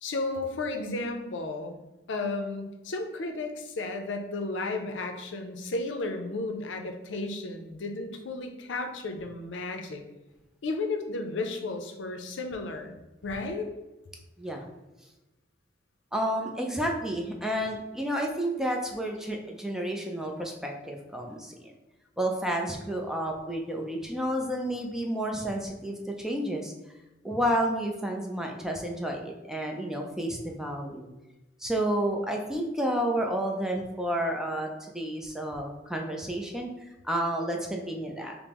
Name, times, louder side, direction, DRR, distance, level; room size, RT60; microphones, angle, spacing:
voice 1, 0.0-1.8 2.1-10.0 10.6-12.9 13.2-13.7, left 2 dB, 80° left, 5 dB, 0.5 m, -33 dB
voice 2, 16.1-21.5 22.2-26.7 27.2-31.1 31.6-36.7 37.0-38.3, right 1 dB, 5° right, 1 dB, 0.4 m, -30 dB
5.2 x 2.0 x 2.9 m, 1.0 s
head